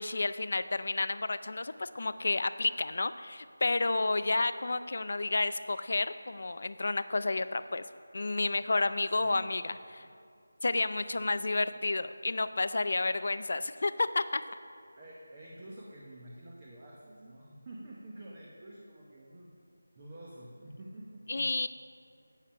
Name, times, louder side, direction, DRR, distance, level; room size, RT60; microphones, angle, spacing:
voice 1, 0.0-7.8 8.1-10.1 10.6-14.4 21.3-21.7, left 2 dB, 40° left, 13 dB, 0.4 m, -31 dB
voice 2, 9.1-9.5 10.0-10.1 11.1-11.6 15.0-19.5 19.9-21.5, right 1 dB, 15° right, -4 dB, 0.8 m, -49 dB
11.5 x 8.5 x 5.6 m, 2.4 s
figure-of-eight pair, 180°, 0 cm